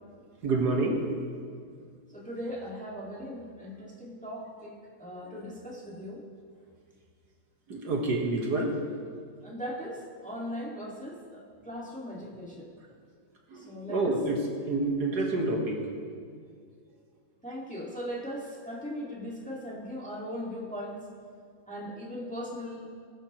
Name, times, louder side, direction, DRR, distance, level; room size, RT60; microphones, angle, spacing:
voice 1, 0.4-1.1 5.2-5.4 7.7-8.8 13.5-15.9, right 2 dB, 65° right, 0 dB, 1.9 m, -28 dB
voice 2, 2.1-4.7 5.0-6.2 9.4-12.7 13.5-14.1 17.4-21.0 21.7-22.9, equal, 5° left, -4 dB, 1.7 m, -39 dB
20.5 x 10.0 x 3.0 m, 2.1 s
omnidirectional pair, 1.9 m